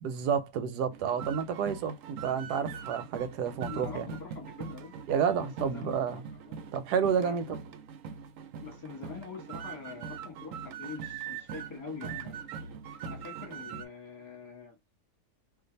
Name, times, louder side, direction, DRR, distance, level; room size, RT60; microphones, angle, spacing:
voice 1, 0.0-4.1 5.1-6.2 6.7-7.4, right 7 dB, 85° right, 1.1 m, -30 dB
sound 1, 0.9-13.9, right 6 dB, 70° right, 0.8 m, -42 dB
voice 2, 3.7-4.9 5.4-6.6 7.2-7.6 8.6-12.4 13.0-14.8, left 5 dB, 15° left, 1.0 m, -45 dB
2.5 x 2.5 x 3.9 m
omnidirectional pair, 1.7 m